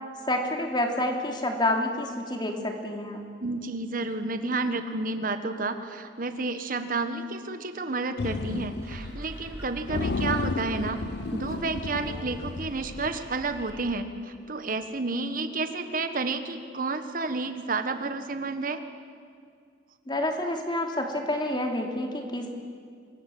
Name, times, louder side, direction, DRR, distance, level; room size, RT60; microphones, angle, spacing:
voice 1, 0.3-3.2 20.1-22.5, left 1 dB, 25° left, 2 dB, 3.0 m, -28 dB
voice 2, 3.4-11.0 11.3-18.8, right 3 dB, 50° right, 8 dB, 1.3 m, -31 dB
sound 1, 8.2-9.2 9.5-9.6 9.9-13.3, left 3 dB, 60° left, 0.7 m, -32 dB
sound 2, 8.8-13.8, equal, 15° right, 7.2 m, -44 dB
26.0 x 22.5 x 7.8 m, 2.2 s
head